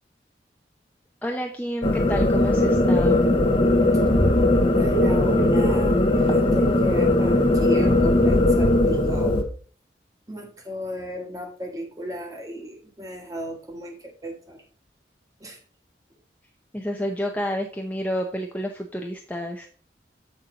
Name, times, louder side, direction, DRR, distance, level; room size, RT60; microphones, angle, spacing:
voice 1, 1.2-3.4 16.7-19.7, equal, 10° left, 1 dB, 0.6 m, -29 dB
sound 1, 1.8-9.4, left 1 dB, 30° left, 0.8 m, -19 dB
voice 2, 4.7-9.4 10.3-14.0 14.2-14.6 15.4-15.6, equal, 20° right, 2 dB, 1.4 m, -35 dB
7.7 x 4.3 x 5.0 m, 0.43 s
head